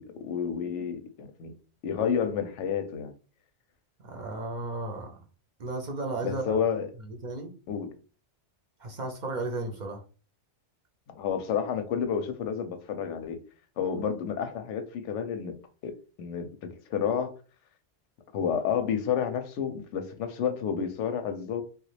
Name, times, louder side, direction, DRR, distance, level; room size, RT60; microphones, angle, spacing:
voice 1, 0.0-1.5 1.8-3.1 6.2-6.9 7.7-7.9 11.1-13.4 13.8-15.5 15.8-15.9 16.2-17.3 18.3-21.6, left 7 dB, 90° left, 0.9 m, -30 dB
voice 2, 4.0-5.2 5.6-6.6 7.0-7.5 8.8-10.0, right 2 dB, 50° right, 0.6 m, -34 dB
3.2 x 2.4 x 3.2 m
omnidirectional pair, 1.2 m